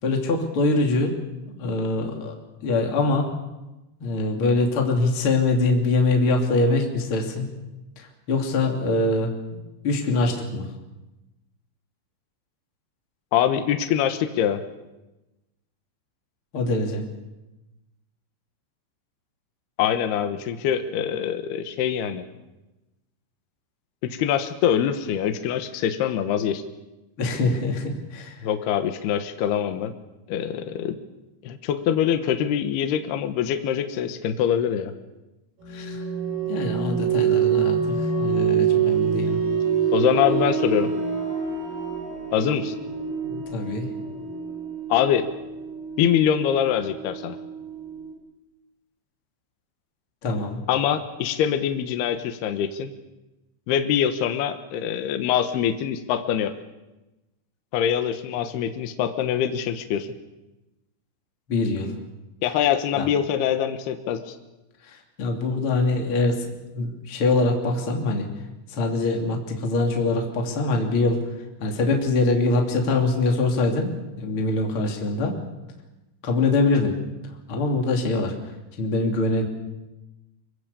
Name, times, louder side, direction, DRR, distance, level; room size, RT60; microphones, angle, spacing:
voice 1, 0.0-1.1 1.5-2.3 2.6-3.3 4.0-7.5 8.0-9.3 9.8-10.7 16.5-17.0 27.2-28.5 35.7-36.0 36.4-39.4 43.2-43.9 50.2-50.6 61.5-61.9 62.9-63.1 64.8-66.4 66.7-68.3 68.7-71.2 71.6-73.9 74.2-75.4 76.2-77.0 77.5-78.3 78.8-79.5, left 2 dB, 30° left, 1 dB, 3.2 m, -23 dB
voice 2, 13.3-14.6 19.8-22.2 24.0-26.6 28.4-29.9 30.3-31.0 31.4-34.9 39.9-40.9 42.3-42.7 44.9-45.2 46.0-47.4 50.7-52.9 53.7-56.5 57.7-60.1 62.4-64.3, left 9 dB, 70° left, 7 dB, 3.0 m, -24 dB
sound 1, 35.6-48.1, right 7 dB, 55° right, 5.7 m, -26 dB
25.0 x 24.0 x 7.0 m, 1.0 s
omnidirectional pair, 5.5 m